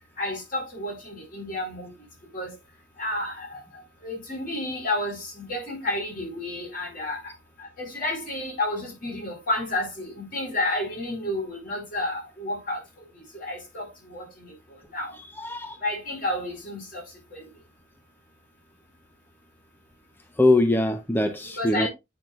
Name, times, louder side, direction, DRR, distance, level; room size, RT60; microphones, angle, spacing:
voice 1, 0.2-1.9 2.3-2.5 3.0-3.6 4.0-7.2 7.6-12.8 13.3-14.5 14.9-15.1 15.8-17.0 17.3-17.4 21.6-21.9, left 1 dB, 50° left, 4.5 m, -31 dB
voice 2, 15.4-15.8 20.4-21.9, left 2 dB, 10° left, 0.5 m, -22 dB
8.8 x 6.2 x 2.4 m
head